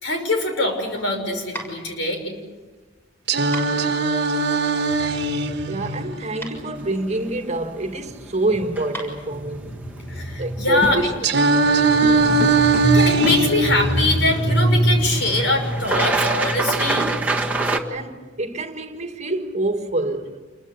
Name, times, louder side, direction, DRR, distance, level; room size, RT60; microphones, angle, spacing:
voice 1, 0.0-2.3 4.2-4.3 4.9-6.0 9.6-11.0 11.6-17.1, left 1 dB, 70° left, 6.1 m, -22 dB
sound 1, 0.6-10.4, right 1 dB, 10° left, 6.8 m, -40 dB
Singing, 3.3-7.3 11.2-15.3, right 3 dB, 60° right, 1.4 m, -21 dB
voice 2, 5.7-9.9 10.4-11.1 11.6-11.8 17.9-20.4, right 2 dB, 35° right, 2.0 m, -26 dB
sound 2, 6.8-17.8, right 2 dB, 10° right, 1.8 m, -29 dB
28.0 x 22.5 x 8.2 m
head